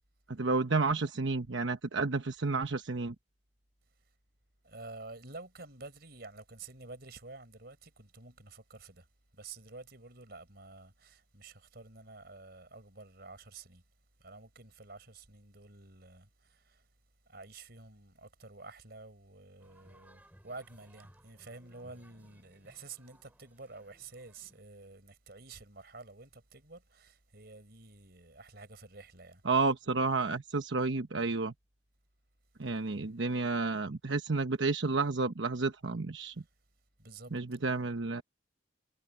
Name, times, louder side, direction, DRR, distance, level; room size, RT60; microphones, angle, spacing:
voice 1, 0.3-3.1 29.5-31.5 32.6-36.3 37.3-38.2, right 3 dB, 80° right, 1.1 m, -31 dB
voice 2, 4.6-9.1 9.3-13.8 14.2-16.9 17.3-29.4 32.8-33.0 36.3-36.5 37.0-37.4, right 3 dB, 55° right, 5.1 m, -50 dB
sound 1, 19.6-24.6, right 1 dB, 10° right, 6.3 m, -62 dB
head